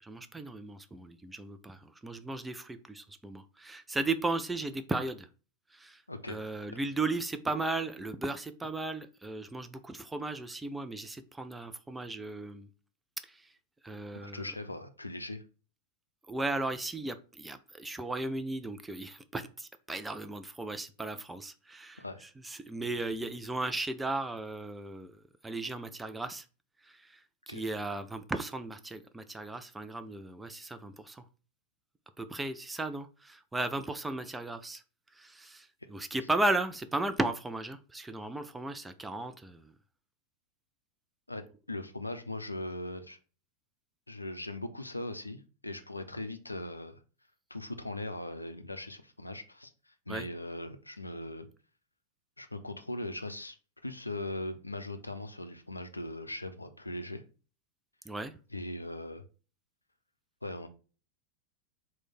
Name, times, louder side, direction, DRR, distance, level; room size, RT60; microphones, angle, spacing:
voice 1, 0.0-5.3 5.7-6.0 6.3-12.7 13.2-13.5 13.8-14.6 16.3-26.4 26.8-31.2 32.2-34.8 35.1-39.7 50.1-50.3 58.1-58.4, right 2 dB, 10° right, 9 dB, 0.3 m, -36 dB
voice 2, 14.1-15.4 22.0-22.2 27.5-27.7 41.3-43.2 44.1-47.0 47.5-51.5 52.4-53.6 53.8-57.2 58.5-59.2 60.4-60.7, left 1 dB, 85° left, 9 dB, 0.4 m, -40 dB
3.1 x 2.1 x 4.1 m, 0.36 s
figure-of-eight pair, 90°, 0 cm